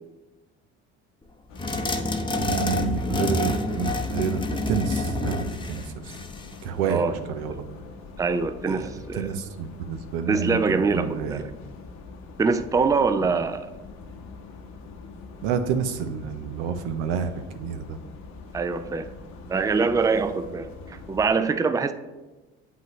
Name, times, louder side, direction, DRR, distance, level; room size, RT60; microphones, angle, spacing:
sound 1, 1.5-21.3, left 3 dB, 65° left, 1.1 m, -43 dB
sound 2, 1.6-6.6, left 2 dB, 15° left, 0.7 m, -28 dB
voice 1, 2.4-6.1 6.6-7.7 8.7-11.4 13.2-13.3 15.4-18.0, right 6 dB, 85° right, 8 dB, 0.7 m, -29 dB
voice 2, 8.2-9.3 10.3-11.5 12.4-13.7 18.5-19.1 19.5-21.9, right 4 dB, 10° right, 10 dB, 0.4 m, -24 dB
7.8 x 5.7 x 3.1 m, 1.1 s
supercardioid pair, 75°, 31 cm